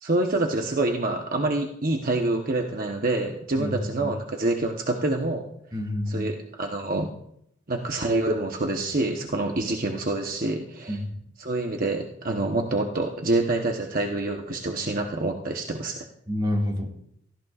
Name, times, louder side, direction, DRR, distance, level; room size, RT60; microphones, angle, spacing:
voice 1, 0.0-5.5 6.1-7.1 7.7-11.0 11.4-16.0, right 2 dB, 50° right, 2 dB, 1.0 m, -26 dB
voice 2, 3.6-4.1 5.7-6.3 10.9-11.2 16.3-16.9, left 1 dB, 25° right, 0 dB, 2.0 m, -28 dB
17.5 x 15.0 x 2.4 m, 0.73 s
head